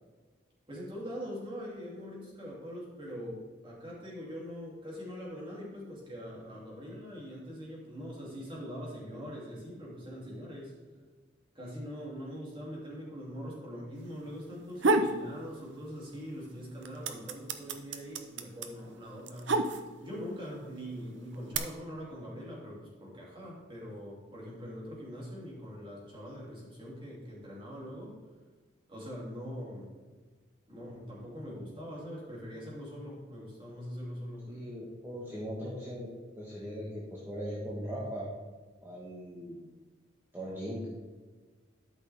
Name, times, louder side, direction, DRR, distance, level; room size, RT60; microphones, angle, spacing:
voice 1, 0.7-10.7 11.5-19.6 20.0-28.2 28.9-29.9 30.7-34.5, equal, 25° right, -4 dB, 2.7 m, -42 dB
sound 1, 14.5-15.2 15.6-16.3 16.6-20.2 20.9-21.6, right 2 dB, 75° right, 0.7 m, -29 dB
voice 2, 34.5-38.3 38.8-39.6 40.3-40.9, equal, 10° right, -6 dB, 1.4 m, -39 dB
12.0 x 5.9 x 3.5 m, 1.4 s
head